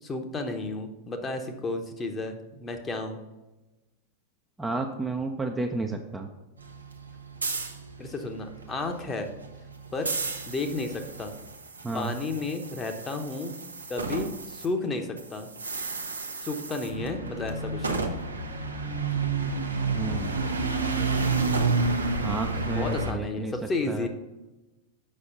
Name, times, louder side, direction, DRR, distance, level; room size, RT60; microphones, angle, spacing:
voice 1, 0.0-3.2 8.0-9.3 9.9-10.1 10.5-11.3 11.9-13.5 13.9-15.5 16.4-18.0 22.7-24.1, left 3 dB, 20° left, 5 dB, 1.0 m, -32 dB
voice 2, 4.6-6.3 11.8-12.1 19.9-20.5 22.2-23.6 23.9-24.1, right 3 dB, 10° right, 2 dB, 0.6 m, -31 dB
sound 1, 6.6-14.7 14.9-23.1, right 3 dB, 75° right, 0.8 m, -31 dB
7.6 x 5.9 x 3.9 m, 1.1 s
figure-of-eight pair, 90°, 0 cm